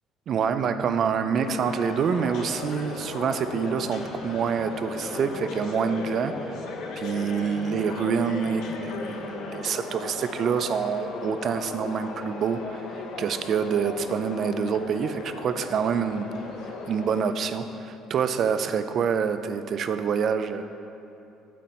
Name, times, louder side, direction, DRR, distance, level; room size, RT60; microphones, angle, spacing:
voice 1, 0.3-6.5 7.0-12.8 13.2-16.3 16.9-20.6, right 6 dB, 50° right, 10 dB, 0.5 m, -26 dB
sound 1, 1.4-17.3, left 3 dB, 70° left, 0.9 m, -36 dB
9.3 x 7.4 x 4.4 m, 2.8 s
cardioid pair, 105°, 0 cm